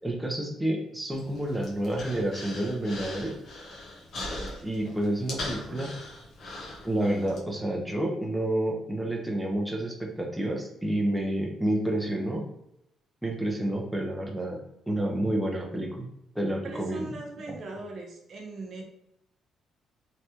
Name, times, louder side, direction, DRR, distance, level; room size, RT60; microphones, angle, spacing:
voice 1, 0.0-3.3 4.6-5.9 6.8-12.4 13.2-14.6 14.9-16.1 16.3-17.1 17.5-17.6, right 1 dB, 5° right, -1 dB, 0.7 m, -29 dB
Human voice, 1.1-7.4, left 1 dB, 60° left, 1.0 m, -40 dB
voice 2, 16.6-18.8, right 2 dB, 60° right, 1 dB, 0.9 m, -40 dB
3.4 x 2.4 x 2.8 m, 0.82 s
cardioid pair, 90°, 0 cm